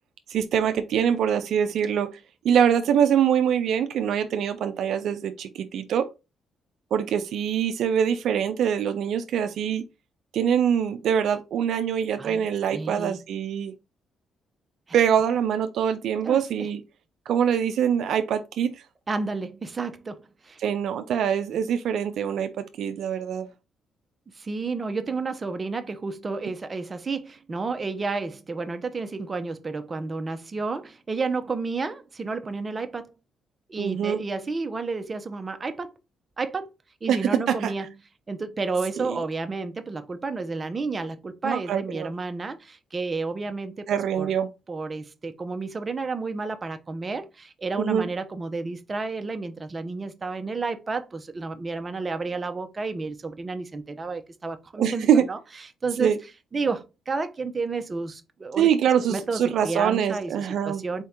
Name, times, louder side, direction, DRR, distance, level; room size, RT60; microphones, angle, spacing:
voice 1, 0.3-2.1 2.4-6.1 6.9-9.8 10.3-13.7 14.9-16.8 17.3-18.8 20.6-23.5 33.8-34.2 37.1-37.2 37.5-37.7 39.0-39.2 41.4-42.1 43.9-44.5 47.8-48.1 54.8-55.2 56.0-56.2 58.5-60.8, right 8 dB, 70° right, 0.4 m, -24 dB
voice 2, 12.7-13.2 16.2-16.4 19.1-20.6 24.3-33.1 33.7-36.0 36.4-36.7 37.0-37.9 38.3-44.3 44.7-55.4 55.8-56.1 56.5-58.7 59.1-61.0, right 4 dB, 30° right, 0.6 m, -31 dB
4.3 x 2.8 x 3.5 m
cardioid pair, 90°, 0 cm